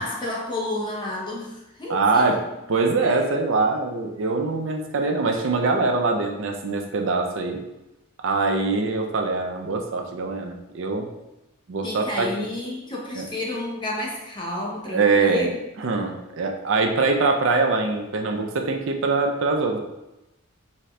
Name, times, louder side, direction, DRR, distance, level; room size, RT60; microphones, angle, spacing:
voice 1, 0.0-2.3 3.0-3.2 3.5-3.7 11.8-15.6, left 1 dB, 20° left, -4 dB, 1.0 m, -31 dB
voice 2, 1.9-2.4 2.7-7.6 8.2-11.1 11.7-12.3 13.2-13.3 14.9-19.8, right 3 dB, 60° right, 4 dB, 0.5 m, -23 dB
4.1 x 3.6 x 3.2 m, 0.95 s
head